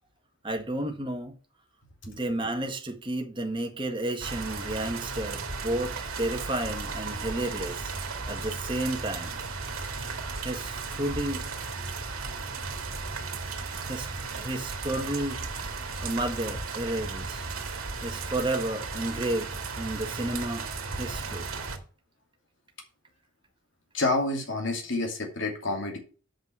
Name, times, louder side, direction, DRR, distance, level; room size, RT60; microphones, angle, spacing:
voice 1, 0.4-1.3 2.1-7.9 8.3-9.4 10.4-11.5 13.9-14.1 14.3-15.4 16.0-17.4 18.0-20.7 21.0-21.5, right 1 dB, 25° right, 1.6 m, -32 dB
sound 1, 4.2-21.8, right 4 dB, 90° right, 2.1 m, -35 dB
voice 2, 23.9-26.0, left 2 dB, 60° left, 2.6 m, -28 dB
7.8 x 5.4 x 7.6 m
head